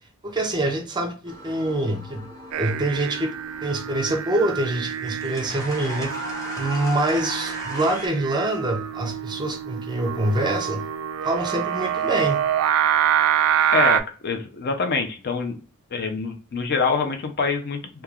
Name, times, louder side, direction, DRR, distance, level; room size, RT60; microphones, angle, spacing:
voice 1, 0.2-2.3 2.6-3.3 3.6-6.1 6.6-10.8 11.2-12.4, right 1 dB, 20° right, 0.5 m, -25 dB
sound 1, 1.3-8.1, left 1 dB, 15° left, 0.7 m, -38 dB
Singing, 2.5-14.0, right 10 dB, 85° right, 0.3 m, -26 dB
voice 2, 13.7-15.6 15.9-18.0, left 4 dB, 50° left, 0.5 m, -25 dB
3.1 x 2.2 x 2.3 m
head